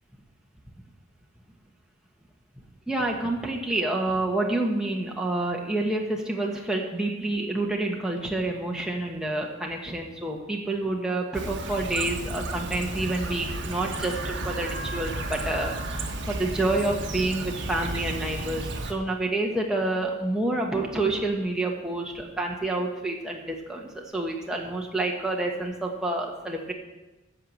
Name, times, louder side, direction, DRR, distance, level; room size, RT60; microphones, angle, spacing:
voice 1, 2.9-26.7, right 2 dB, 5° right, -1 dB, 1.4 m, -28 dB
Chirp tweet, 11.3-18.9, right 2 dB, 60° right, 1.2 m, -33 dB
14.0 x 4.8 x 7.1 m, 1.1 s
head